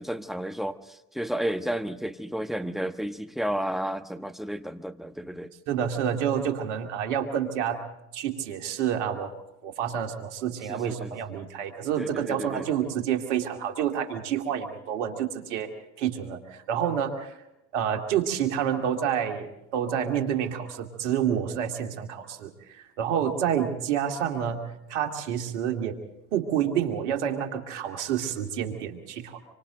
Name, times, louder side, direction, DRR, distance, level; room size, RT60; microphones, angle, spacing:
voice 1, 0.0-5.5 10.7-11.1 12.0-12.7, right 1 dB, ahead, 9 dB, 1.3 m, -32 dB
voice 2, 5.7-7.8 8.1-9.3 9.6-15.7 16.0-17.4 17.7-26.0 26.3-29.4, right 9 dB, 85° right, 4 dB, 2.5 m, -28 dB
26.5 x 25.5 x 3.9 m, 0.89 s
hypercardioid pair, 75°, 35 cm